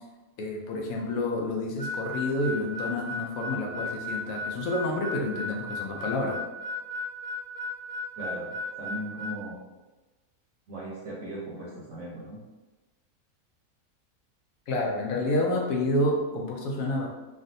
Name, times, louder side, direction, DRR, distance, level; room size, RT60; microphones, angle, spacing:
voice 1, 0.4-6.4 14.7-17.1, left 1 dB, 75° left, 0 dB, 1.0 m, -29 dB
Harmonica, 1.8-9.4, left 2 dB, 5° right, 0.4 m, -35 dB
voice 2, 8.2-9.6 10.7-12.4, right 1 dB, 65° right, -5 dB, 1.0 m, -38 dB
3.4 x 2.4 x 2.6 m, 1.2 s
omnidirectional pair, 1.5 m